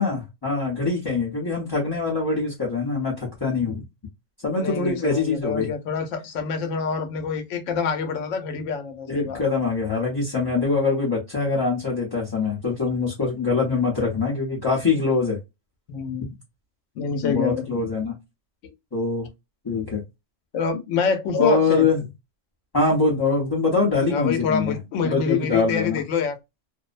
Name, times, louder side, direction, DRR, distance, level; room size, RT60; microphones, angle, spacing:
voice 1, 0.0-3.8 4.4-5.7 9.1-15.4 17.2-18.2 18.9-19.3 19.6-20.0 21.3-22.0 22.7-24.8 25.0-26.0, left 4 dB, 25° left, 0.7 m, -23 dB
voice 2, 4.6-9.4 15.9-16.3 17.0-17.6 18.6-18.7 20.5-21.9 24.1-26.4, left 6 dB, 75° left, 1.0 m, -26 dB
2.6 x 2.0 x 2.4 m
omnidirectional pair, 1.3 m